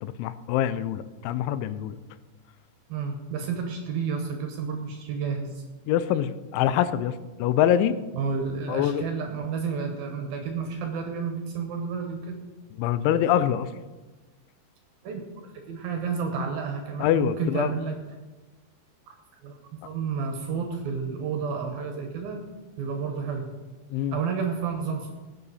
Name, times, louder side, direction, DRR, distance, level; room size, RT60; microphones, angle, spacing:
voice 1, 0.0-2.0 5.9-8.0 8.7-9.1 12.8-13.7 17.0-17.7 23.9-24.2, left 10 dB, 90° left, 14 dB, 3.0 m, -25 dB
voice 2, 2.9-5.6 8.1-12.4 15.0-18.0 19.4-22.5 22.8-23.5 24.1-25.1, right 5 dB, 70° right, 4 dB, 2.5 m, -31 dB
19.0 x 8.5 x 4.2 m, 1.2 s
omnidirectional pair, 5.3 m